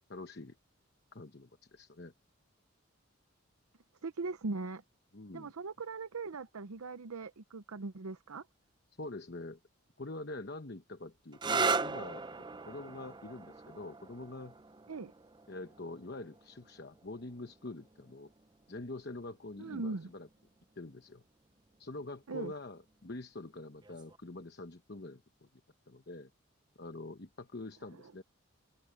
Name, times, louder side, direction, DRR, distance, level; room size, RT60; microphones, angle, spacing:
voice 1, 0.1-0.6 1.1-2.1 5.1-5.5 9.0-9.6 10.0-12.2 12.6-14.5 15.5-18.3 18.7-20.3 20.8-21.2 21.8-25.5 25.9-26.3 26.8-28.2, left 2 dB, 50° left, 1.0 m, -45 dB
voice 2, 4.0-4.8 5.3-8.4 14.9-15.1 19.6-20.1 22.3-22.5, right 3 dB, 90° right, 0.7 m, -40 dB
sound 1, 11.3-18.8 19.8-20.3 23.8-24.2, right 4 dB, 20° right, 0.4 m, -38 dB
head